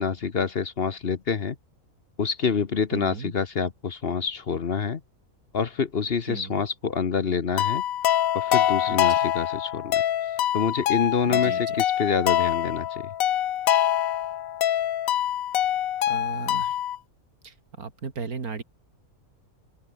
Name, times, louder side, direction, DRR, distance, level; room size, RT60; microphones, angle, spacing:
voice 1, 0.0-1.6 2.2-5.0 5.5-7.8 8.3-10.0 10.5-13.0, left 6 dB, 45° left, 1.2 m, -27 dB
voice 2, 2.9-3.3 6.3-6.6 8.9-9.3 11.3-11.8 16.1-16.8 17.4-18.6, right 5 dB, 85° right, 2.8 m, -36 dB
sound 1, 7.6-17.0, left 11 dB, 75° left, 1.2 m, -24 dB
open air
omnidirectional pair, 1.5 m